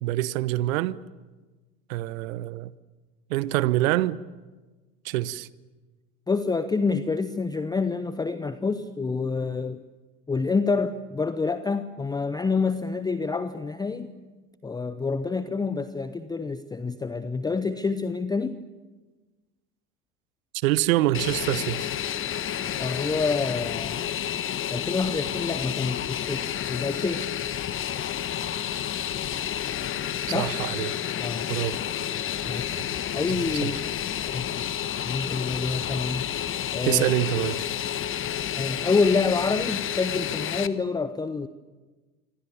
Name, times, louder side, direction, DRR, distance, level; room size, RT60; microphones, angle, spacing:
voice 1, 0.0-1.0 1.9-2.7 3.3-4.2 5.0-5.5 20.6-21.9 30.3-30.9 31.5-31.8 33.3-33.8 36.8-37.6, right 16 dB, 55° right, 1.0 m, -25 dB
voice 2, 6.3-9.8 10.3-14.1 14.6-18.6 22.8-24.0 24.7-27.3 30.3-30.5 31.2-31.5 32.5-32.8 33.1-33.8 34.3-34.5 35.0-36.3 36.7-37.0 38.5-41.5, left 4 dB, 10° left, 0.8 m, -27 dB
Fixed-wing aircraft airplane, 21.1-40.7, left 10 dB, 25° left, 1.2 m, -30 dB
27.5 x 24.5 x 7.2 m
figure-of-eight pair, 85°, 48 cm